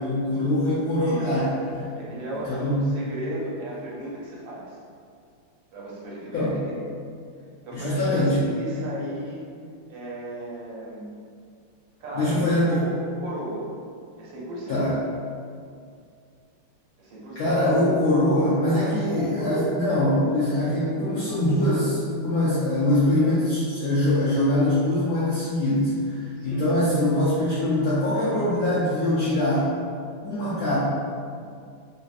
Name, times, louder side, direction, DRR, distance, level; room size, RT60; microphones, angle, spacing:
voice 1, 0.0-1.8 2.4-2.8 6.3-6.6 7.7-8.4 12.1-12.9 14.7-14.9 17.4-29.7 30.2-30.8, left 1 dB, 75° left, -9 dB, 0.8 m, -23 dB
voice 2, 1.0-1.4 2.0-4.8 5.7-6.6 7.6-9.4 9.9-11.0 12.0-13.7 14.2-14.8 17.0-17.6 18.6-19.8 26.4-26.7, right 1 dB, 80° right, -6 dB, 1.5 m, -35 dB
3.2 x 2.7 x 2.4 m, 2.3 s
omnidirectional pair, 2.1 m